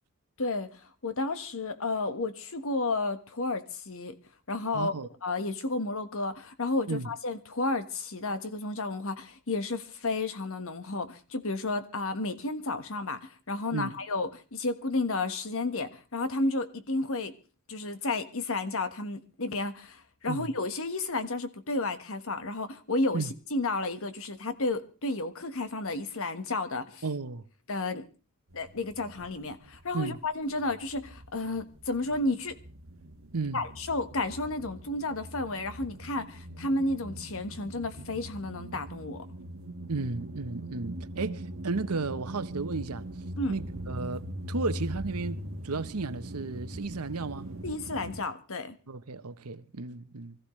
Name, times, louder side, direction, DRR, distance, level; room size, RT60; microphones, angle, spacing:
voice 1, 0.4-4.2 4.5-4.9 5.2-17.3 17.7-27.0 27.7-28.0 28.5-32.6 33.5-39.3 43.4-43.6 47.6-48.8, left 2 dB, 65° left, 1.4 m, -32 dB
voice 2, 4.7-5.1 6.9-7.1 13.7-13.9 20.3-20.5 23.1-23.3 27.0-27.5 29.9-30.2 33.3-33.6 39.9-43.1 43.5-47.5 48.9-50.4, right 3 dB, 80° right, 0.9 m, -34 dB
sound 1, 28.5-30.1 30.4-48.2, right 1 dB, 65° right, 1.6 m, -41 dB
25.0 x 14.5 x 3.2 m
head